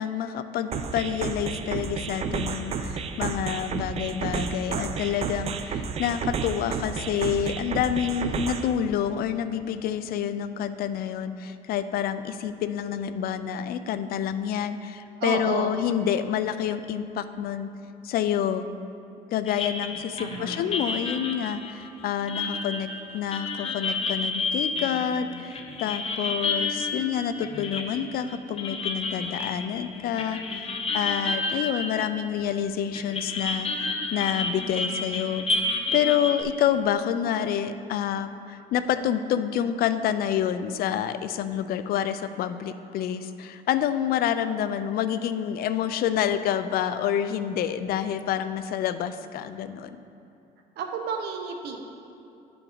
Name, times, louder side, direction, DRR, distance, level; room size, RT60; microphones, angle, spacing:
voice 1, 0.0-17.7 18.0-18.7 19.3-22.9 23.1-35.5 35.9-50.0, left 9 dB, 65° left, 11 dB, 0.4 m, -28 dB
sound 1, 0.7-8.7, right 5 dB, 40° right, 0.4 m, -31 dB
voice 2, 15.2-15.7 20.1-20.6 50.8-51.8, right 5 dB, 75° right, 3 dB, 0.9 m, -31 dB
sound 2, 19.5-32.6 32.9-36.4, left 3 dB, 35° left, 0.7 m, -31 dB
11.0 x 4.6 x 3.9 m, 2.7 s
cardioid pair, 110°, 17 cm